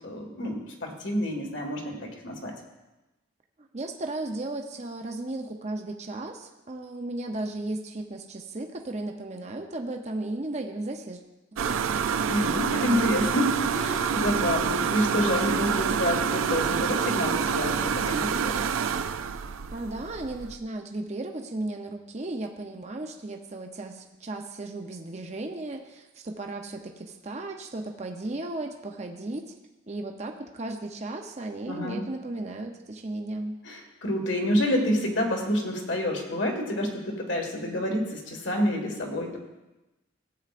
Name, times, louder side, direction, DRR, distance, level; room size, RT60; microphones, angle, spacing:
voice 1, 0.0-2.5 12.3-18.7 31.7-32.0 33.6-39.4, left 1 dB, 70° left, 1 dB, 1.7 m, -28 dB
voice 2, 3.7-11.2 11.7-11.8 19.7-29.4 29.9-33.6, right 2 dB, 35° right, 3 dB, 0.6 m, -35 dB
sound 1, 11.6-20.5, right 7 dB, 90° right, 0.4 m, -27 dB
15.0 x 8.6 x 2.5 m, 1.0 s
head